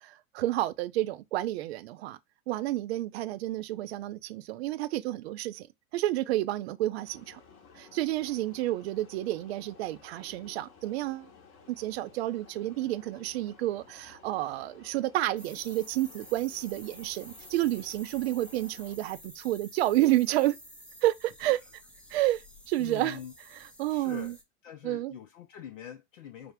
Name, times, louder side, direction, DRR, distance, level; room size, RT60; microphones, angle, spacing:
voice 1, 0.0-2.2 2.5-5.7 5.9-7.4 7.7-11.3 11.7-20.6 21.0-21.6 22.1-23.2 23.5-24.3 24.8-25.1, right 15 dB, 50° right, 0.5 m, -30 dB
sound 1, 7.1-19.0, left 5 dB, 30° left, 0.9 m, -55 dB
sound 2, 15.4-24.4, equal, 5° left, 0.5 m, -51 dB
voice 2, 22.8-23.3 23.9-24.4 24.6-26.5, left 9 dB, 65° left, 0.6 m, -44 dB
5.1 x 2.1 x 3.4 m
figure-of-eight pair, 95°, 42 cm